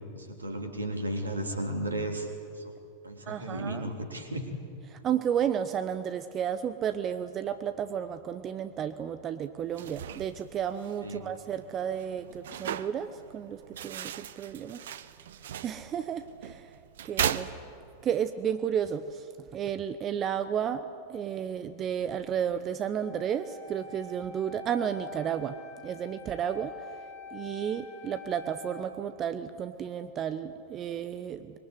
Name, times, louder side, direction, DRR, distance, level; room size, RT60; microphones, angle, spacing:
voice 1, 0.1-2.7 3.0-4.5 11.0-11.2, right 1 dB, 75° right, 4 dB, 3.5 m, -34 dB
voice 2, 3.3-3.9 4.9-14.8 15.6-16.7 17.0-17.5 18.0-25.6 25.8-26.7 27.3-31.6, right 8 dB, 30° right, 11 dB, 1.0 m, -32 dB
sound 1, 9.6-18.2, right 10 dB, 60° right, 1.0 m, -38 dB
Wind instrument woodwind instrument, 23.0-28.9, left 3 dB, 40° left, 5.6 m, -46 dB
25.0 x 22.5 x 9.7 m, 2.4 s
figure-of-eight pair, 90°, 0 cm